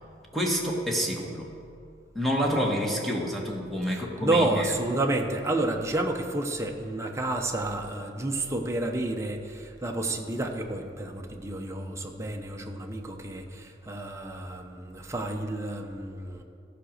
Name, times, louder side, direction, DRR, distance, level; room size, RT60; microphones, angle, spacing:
voice 1, 0.3-1.5 2.1-4.7, equal, ahead, -1 dB, 1.3 m, -28 dB
voice 2, 3.9-16.4, right 2 dB, 15° right, 2 dB, 0.8 m, -30 dB
15.0 x 5.1 x 6.5 m, 2.4 s
head